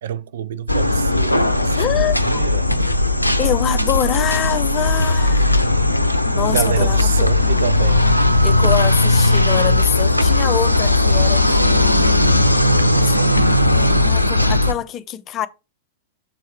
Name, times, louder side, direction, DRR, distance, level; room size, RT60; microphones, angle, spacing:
voice 1, 0.0-3.0 6.5-8.2, right 9 dB, 55° right, 0.4 m, -27 dB
sound 1, 0.7-14.7, left 2 dB, 90° left, 0.6 m, -17 dB
voice 2, 1.8-2.5 3.4-5.6 6.3-7.3 8.4-12.5 13.0-13.2 14.0-15.5, left 11 dB, 30° left, 0.6 m, -25 dB
7.4 x 4.5 x 4.7 m
figure-of-eight pair, 100°, 0 cm